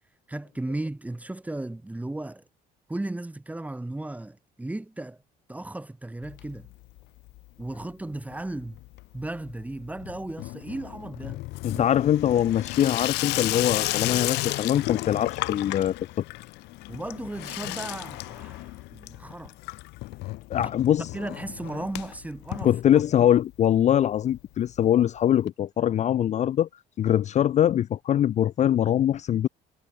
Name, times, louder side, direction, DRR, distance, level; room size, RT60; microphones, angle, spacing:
voice 1, 0.3-2.4 2.9-5.2 5.5-6.7 7.6-8.8 9.1-11.4 11.7-11.8 12.3-12.4 16.9-19.5 20.6-20.7 21.1-23.0, right 2 dB, 10° right, 1.2 m, -35 dB
Water tap faucet / Sink (filling or washing), 6.2-7.0 7.3-7.8 8.1-23.4 23.7-23.8 24.0-24.1 24.3-24.4 25.5-25.6, left 20 dB, 85° left, 0.8 m, -34 dB
voice 2, 11.6-16.0 20.5-21.1 22.6-26.7 27.0-29.5, left 11 dB, 45° left, 0.4 m, -23 dB
cardioid pair, 110°, 17 cm